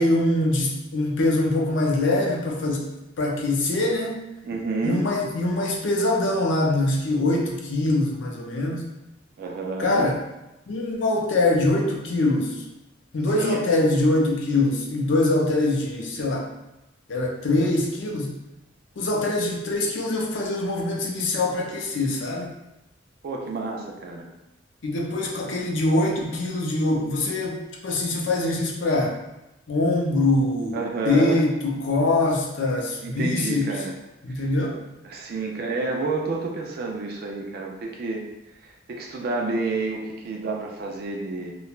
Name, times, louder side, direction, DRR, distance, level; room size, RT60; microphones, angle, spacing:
voice 1, 0.0-2.9 3.2-4.3 4.8-8.8 9.8-10.2 10.7-12.6 13.1-16.5 17.1-18.3 19.0-22.5 24.8-27.6 27.8-29.2 29.7-30.8 31.1-33.7 34.2-34.8, left 2 dB, 70° left, -1 dB, 0.5 m, -23 dB
voice 2, 4.4-5.1 9.4-10.1 13.4-13.6 23.2-24.3 30.7-31.4 33.0-33.9 34.4-34.5 35.0-38.2 38.6-41.6, right 3 dB, 55° right, 1 dB, 0.3 m, -29 dB
3.1 x 2.1 x 2.3 m, 0.94 s
head